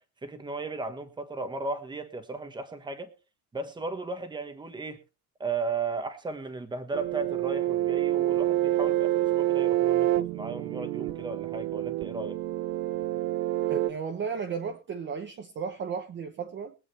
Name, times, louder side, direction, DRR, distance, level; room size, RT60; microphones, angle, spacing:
voice 1, 0.2-3.1 3.5-5.0 5.4-12.4, right 3 dB, 10° right, 1.3 m, -35 dB
sound 1, 6.9-13.9, right 14 dB, 65° right, 0.8 m, -27 dB
voice 2, 13.7-16.7, right 6 dB, 30° right, 0.9 m, -34 dB
22.5 x 8.5 x 3.3 m
cardioid pair, 175°, 40 cm